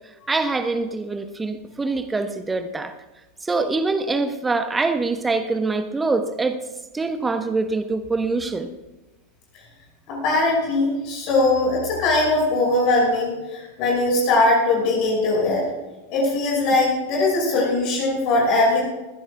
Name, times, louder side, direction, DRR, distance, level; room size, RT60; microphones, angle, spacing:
voice 1, 0.3-2.9 3.4-6.6 6.9-8.7, right 3 dB, 10° right, 9 dB, 1.1 m, -24 dB
voice 2, 10.1-15.6 16.1-18.9, left 2 dB, 40° left, -3 dB, 5.7 m, -20 dB
20.5 x 16.5 x 2.4 m, 1.1 s
figure-of-eight pair, 90°, 0 cm